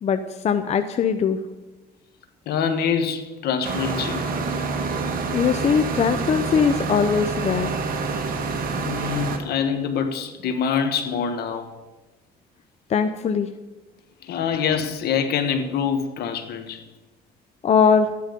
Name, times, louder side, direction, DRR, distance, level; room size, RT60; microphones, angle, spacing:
voice 1, 0.0-1.4 5.3-7.7 12.9-13.5 17.6-18.1, left 6 dB, 40° left, 8 dB, 0.7 m, -21 dB
voice 2, 2.4-4.3 8.8-11.7 14.2-16.8, left 6 dB, 70° left, 8 dB, 1.6 m, -25 dB
sound 1, 3.6-9.4, right 4 dB, 60° right, 1.8 m, -27 dB
13.0 x 10.0 x 5.3 m, 1.1 s
cardioid pair, 110°, 17 cm